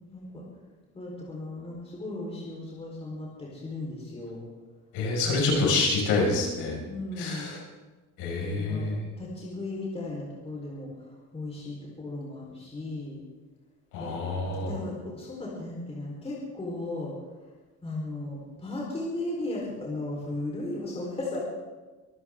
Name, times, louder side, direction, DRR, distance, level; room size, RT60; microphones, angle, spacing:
voice 1, 0.1-0.4 0.9-4.4 6.8-7.5 8.3-13.2 14.0-17.1 17.8-21.4, left 2 dB, 20° left, -4 dB, 4.2 m, -36 dB
voice 2, 4.9-6.8 7.2-7.6 8.2-9.0 13.9-14.7, left 3 dB, 80° left, -1 dB, 5.8 m, -27 dB
24.0 x 14.0 x 3.7 m, 1.2 s
cardioid pair, 145°, 31 cm